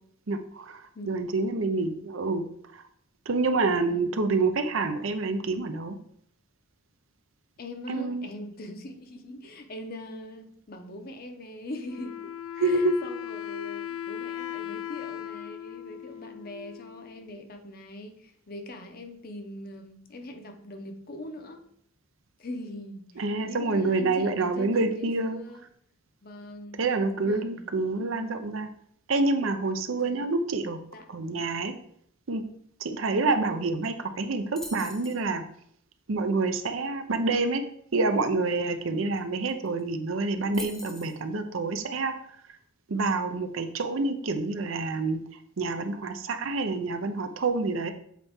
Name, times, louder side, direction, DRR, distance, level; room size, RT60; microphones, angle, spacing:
voice 1, 0.3-2.5 2.7-2.8 3.3-6.0 7.9-8.3 12.6-12.9 23.2-25.4 26.8-28.7 29.1-30.8 31.1-31.7 32.3-32.4 32.8-35.4 36.1-37.6 37.9-42.1 42.9-45.2 45.6-47.9, right 3 dB, 85° right, 8 dB, 0.7 m, -27 dB
voice 2, 7.6-21.7 22.4-25.6 26.2-26.8 27.2-27.7 28.0-28.4 30.0-30.3 30.9-31.1, left 1 dB, 50° left, 6 dB, 0.7 m, -42 dB
Wind instrument woodwind instrument, 11.8-17.3, left 10 dB, 85° left, 0.4 m, -38 dB
sound 1, 34.6-35.2 39.2-39.3 39.5-39.8 40.5-41.2, left 1 dB, ahead, 0.6 m, -42 dB
7.5 x 4.0 x 3.6 m, 0.67 s
head